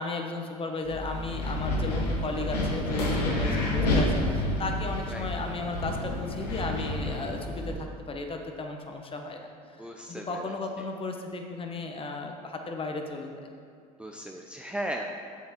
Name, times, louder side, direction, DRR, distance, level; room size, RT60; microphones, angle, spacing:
voice 1, 0.0-7.7 8.1-9.5 9.8-13.3, left 3 dB, 25° left, 3 dB, 1.1 m, -35 dB
Wind, 0.8-7.7, left 1 dB, 85° left, 1.3 m, -29 dB
voice 2, 3.2-3.8 5.1-5.3 9.8-10.6 14.0-15.1, right 1 dB, 5° right, 1 dB, 0.6 m, -37 dB
7.2 x 7.2 x 4.3 m, 2.3 s
hypercardioid pair, 75°, 20 cm